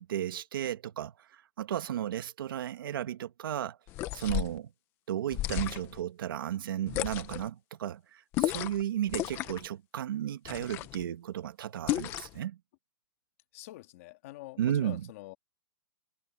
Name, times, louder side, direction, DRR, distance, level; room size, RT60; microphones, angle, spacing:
voice 1, 0.0-3.8 4.1-4.7 5.1-12.6 14.6-15.1, right 11 dB, 60° right, 1.7 m, -34 dB
sound 1, 3.9-4.6 5.3-6.0 6.9-7.5 8.3-8.8 9.1-9.7 10.5-11.0 11.9-12.4, left 16 dB, 15° left, 0.9 m, -33 dB
voice 2, 13.5-15.4, left 18 dB, 35° left, 2.0 m, -46 dB
hypercardioid pair, 175°, 13 cm